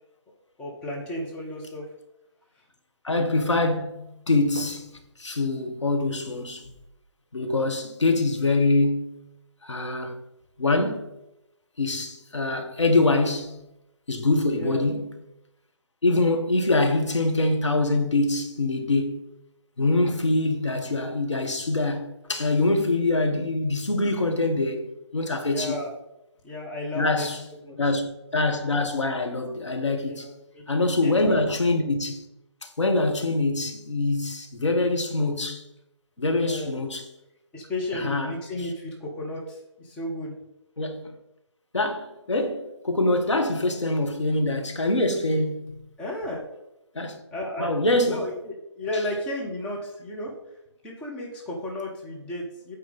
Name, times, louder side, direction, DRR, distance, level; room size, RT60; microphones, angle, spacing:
voice 1, 0.6-1.8 14.5-14.9 25.5-25.9 26.4-27.3 27.6-27.8 30.1-30.6 31.0-31.3 36.3-36.7 37.5-40.4 46.0-46.4 47.3-47.7 48.1-50.3 50.8-52.8, left 1 dB, 5° left, 0.9 m, -33 dB
voice 2, 3.0-4.9 5.2-6.7 7.3-9.2 9.6-10.2 10.6-11.1 11.8-13.6 14.1-15.1 16.0-19.2 19.8-24.9 25.1-25.8 26.9-27.4 27.8-30.3 30.7-32.2 32.6-35.6 36.2-37.1 37.9-38.7 40.8-41.0 41.7-45.8 46.9-47.2 47.6-48.2 48.9-49.0, left 2 dB, 75° left, 1.5 m, -24 dB
8.4 x 4.6 x 5.3 m
figure-of-eight pair, 150°, 15 cm